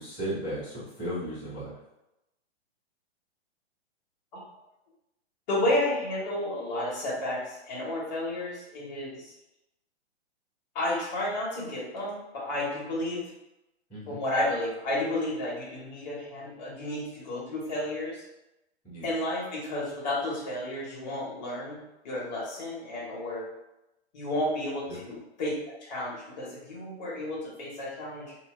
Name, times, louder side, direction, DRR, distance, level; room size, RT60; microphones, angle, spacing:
voice 1, 0.0-1.7 13.9-14.2 18.8-19.1 24.9-25.0, right 1 dB, ahead, -26 dB, 0.3 m, -35 dB
voice 2, 5.5-9.3 10.7-13.3 14.1-18.2 19.0-23.5 24.1-25.5 25.8-28.4, left 1 dB, 40° left, -4 dB, 1.2 m, -32 dB
2.7 x 2.2 x 3.5 m, 0.92 s
hypercardioid pair, 165°, 34 cm